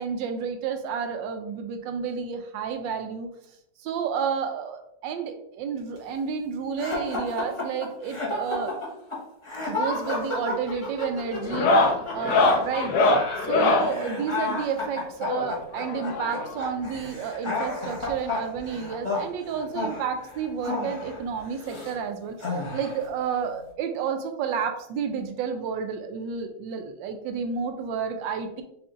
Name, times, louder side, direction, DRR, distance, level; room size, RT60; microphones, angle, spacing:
voice 1, 0.0-3.3 3.8-8.7 9.7-12.9 13.4-28.6, right 6 dB, 75° right, 6 dB, 1.2 m, -31 dB
sound 1, 6.8-22.0 22.4-23.1, left 2 dB, 25° left, 0.8 m, -32 dB
sound 2, 9.9-10.2 10.5-10.9 11.4-13.9 15.3-16.6 17.7-17.8 18.0-18.1 18.6-18.7 20.0-20.1 21.4-21.5, left 2 dB, 70° left, 0.9 m, -23 dB
4.9 x 2.6 x 3.7 m, 0.77 s
omnidirectional pair, 2.2 m